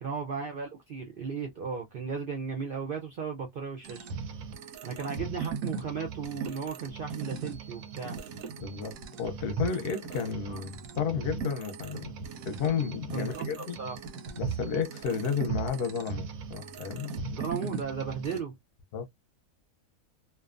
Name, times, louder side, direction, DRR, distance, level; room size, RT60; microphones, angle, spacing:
voice 1, 0.0-4.1 4.8-8.2 10.5-10.6 12.0-12.1 13.1-14.0 17.4-18.6, right 5 dB, 60° right, 0.5 m, -35 dB
sound 1, 3.8-18.4, right 5 dB, 90° right, 1.0 m, -38 dB
voice 2, 8.6-12.1 12.5-13.8 14.3-17.4 18.9-19.0, left 6 dB, 55° left, 0.8 m, -32 dB
2.5 x 2.2 x 2.4 m
omnidirectional pair, 1.4 m